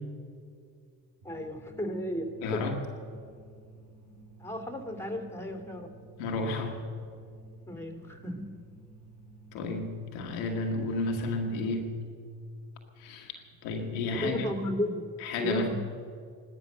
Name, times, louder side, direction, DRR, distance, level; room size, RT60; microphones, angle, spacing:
voice 1, 1.2-2.7 4.4-6.0 7.7-8.6 14.2-15.0 15.4-15.7, equal, 5° left, 5 dB, 2.9 m, -34 dB
sound 1, 1.2-13.9, right 2 dB, 85° right, 4.4 m, -54 dB
voice 2, 2.4-2.8 6.2-6.9 9.5-12.0 13.0-13.3 13.6-14.5 15.2-15.7, left 2 dB, 85° left, 2 dB, 1.7 m, -32 dB
16.5 x 12.5 x 6.8 m, 2.2 s
hypercardioid pair, 45°, 48 cm